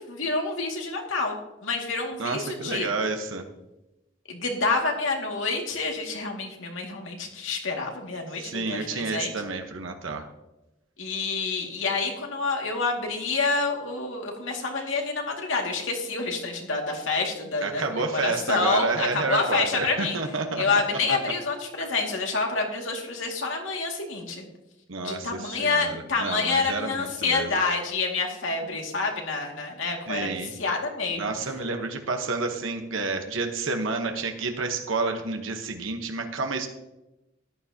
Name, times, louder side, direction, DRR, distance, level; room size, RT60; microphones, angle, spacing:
voice 1, 0.1-2.9 4.3-9.3 11.0-20.2 20.5-24.4 25.0-31.2, left 4 dB, 75° left, 1 dB, 2.2 m, -28 dB
voice 2, 2.2-3.4 8.4-10.3 17.6-20.6 21.1-21.2 24.9-27.5 30.1-30.5 31.2-36.7, right 3 dB, 80° right, 4 dB, 1.1 m, -29 dB
13.5 x 11.5 x 2.9 m, 0.95 s
head